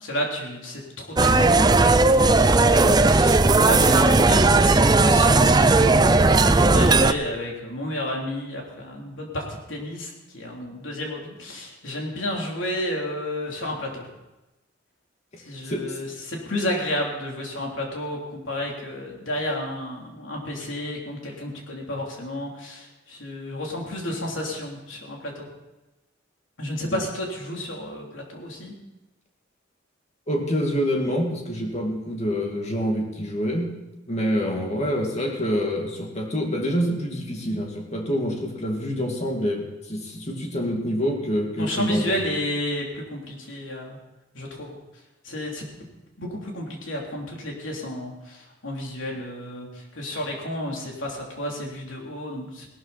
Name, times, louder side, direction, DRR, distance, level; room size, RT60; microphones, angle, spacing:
voice 1, 0.0-14.1 15.4-25.5 26.6-28.7 41.6-44.0 44.3-44.8 45.2-45.7 46.2-52.7, left 1 dB, 75° left, -1 dB, 3.4 m, -31 dB
sound 1, 1.2-7.1, right 3 dB, 20° right, 0.5 m, -16 dB
voice 2, 30.3-33.7 34.1-42.2, equal, 35° left, 1 dB, 2.3 m, -26 dB
18.0 x 12.5 x 4.3 m, 1.0 s
head